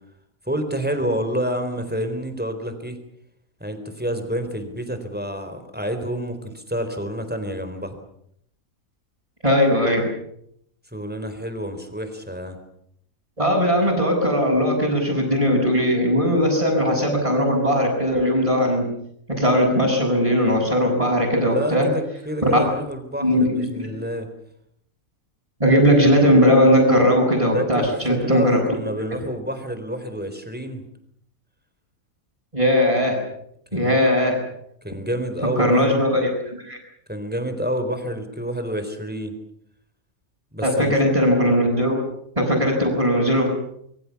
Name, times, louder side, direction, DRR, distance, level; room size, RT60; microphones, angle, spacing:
voice 1, 0.5-3.0 3.6-7.9 10.9-12.6 21.4-24.3 27.5-30.8 33.7-34.0 34.8-35.9 37.1-39.3 40.5-41.0, equal, 5° right, 8 dB, 4.0 m, -28 dB
voice 2, 9.4-10.1 13.4-18.9 19.3-21.9 22.5-22.6 23.2-23.9 25.6-28.6 32.5-33.2 33.7-34.4 35.6-36.8 40.6-42.0 42.3-43.5, equal, 25° right, -6 dB, 6.7 m, -19 dB
26.0 x 23.0 x 7.2 m, 0.73 s
omnidirectional pair, 1.5 m